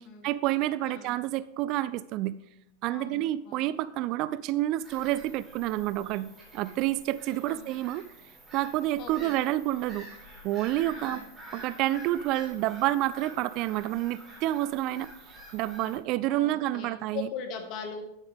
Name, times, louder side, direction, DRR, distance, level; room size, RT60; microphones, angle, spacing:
voice 1, 0.2-2.4 2.8-8.0 8.5-10.1 10.4-11.2 11.5-15.1 15.5-17.3, right 15 dB, 40° right, 17 dB, 0.3 m, -29 dB
voice 2, 0.8-1.2 2.9-3.7 7.4-7.7 9.0-9.4 11.0-11.3 16.3-18.0, left 6 dB, 40° left, 4 dB, 1.8 m, -40 dB
Bird vocalization bird call bird song / Gull seagull, 4.8-16.0, right 1 dB, 15° right, 4.0 m, -48 dB
11.0 x 9.0 x 3.5 m, 0.81 s
figure-of-eight pair, 90°, 0 cm